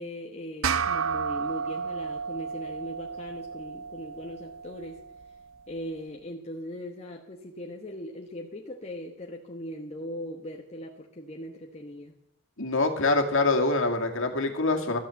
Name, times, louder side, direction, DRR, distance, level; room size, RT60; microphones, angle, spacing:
voice 1, 0.0-5.0 5.7-12.1, equal, 30° left, 0 dB, 1.2 m, -39 dB
sound 1, 0.6-5.4, right 6 dB, 70° right, 0.6 m, -32 dB
voice 2, 12.6-15.0, left 3 dB, 65° left, 3 dB, 2.2 m, -25 dB
13.5 x 8.8 x 7.7 m, 0.76 s
head